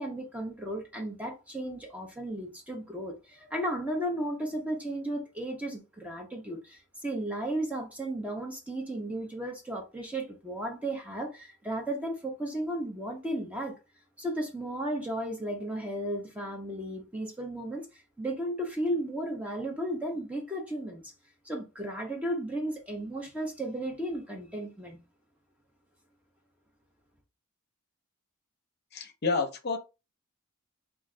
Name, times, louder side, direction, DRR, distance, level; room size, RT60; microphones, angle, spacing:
voice 1, 0.0-13.8 14.2-21.1 21.4-25.0, right 1 dB, 5° right, 0.6 m, -34 dB
voice 2, 28.9-29.8, left 4 dB, 45° left, 0.7 m, -29 dB
3.1 x 2.4 x 3.7 m
head